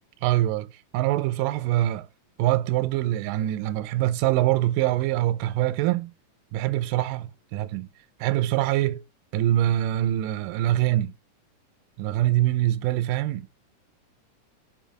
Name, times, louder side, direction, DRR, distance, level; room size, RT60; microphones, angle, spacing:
voice 1, 0.2-0.7 0.9-2.1 2.4-6.1 6.5-7.9 8.2-9.0 9.3-11.1 12.0-13.6, right 14 dB, 80° right, 2.1 m, -24 dB
5.6 x 5.0 x 5.2 m
omnidirectional pair, 4.0 m